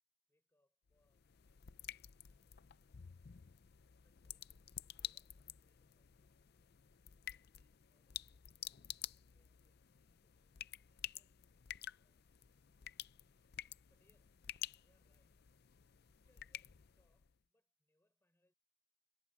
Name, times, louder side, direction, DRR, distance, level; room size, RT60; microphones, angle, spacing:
voice 1, 0.3-2.6 4.0-4.5 4.8-6.8 7.3-12.2 13.9-14.5 14.8-15.4 16.2-18.5, left 1 dB, 15° left, 4.3 m, -83 dB
sound 1, 0.9-17.3, left 12 dB, 55° left, 0.5 m, -51 dB
head